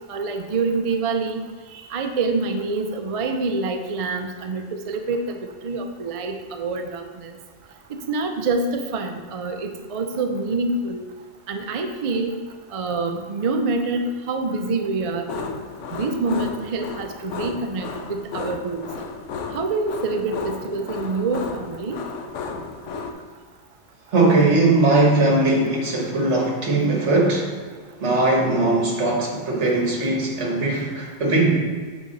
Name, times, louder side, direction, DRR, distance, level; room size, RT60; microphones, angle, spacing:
voice 1, 0.1-1.4 1.7-7.3 7.9-11.0 11.5-12.4 12.7-15.3 15.9-18.8 19.5-22.0, right 3 dB, 50° right, 5 dB, 0.4 m, -26 dB
sound 1, 15.3-23.1, left 4 dB, 90° left, 1.0 m, -33 dB
voice 2, 24.1-27.5 28.0-31.6, right 2 dB, 70° right, 0 dB, 1.6 m, -19 dB
8.4 x 4.0 x 3.9 m, 1.6 s
omnidirectional pair, 1.2 m